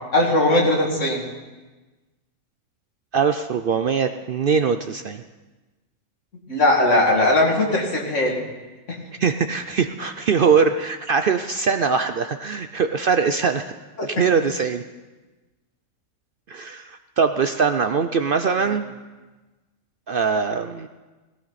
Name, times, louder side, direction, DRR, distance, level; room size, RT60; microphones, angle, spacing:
voice 1, 0.1-1.2 6.5-8.4 8.9-9.0 14.0-14.1 18.7-18.8, left 1 dB, 60° left, -1 dB, 2.7 m, -19 dB
voice 2, 3.1-5.2 9.2-13.7 14.0-14.8 16.5-18.8 20.1-20.9, right 5 dB, 60° right, 8 dB, 0.6 m, -22 dB
17.5 x 15.5 x 4.1 m, 1.2 s
omnidirectional pair, 1.4 m